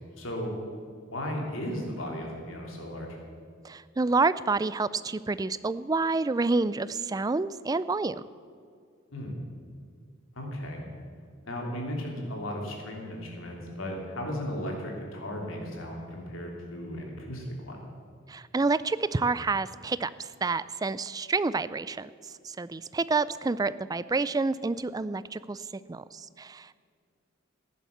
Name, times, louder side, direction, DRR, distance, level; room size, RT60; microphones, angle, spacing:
voice 1, 0.2-0.5 1.1-3.2 9.1-9.4 10.3-10.9 11.4-17.8, equal, 80° left, 0 dB, 3.3 m, -35 dB
voice 2, 3.6-8.2 18.3-22.1 22.4-26.8, right 3 dB, 20° right, 16 dB, 0.3 m, -28 dB
15.0 x 10.5 x 7.2 m, 2.3 s
head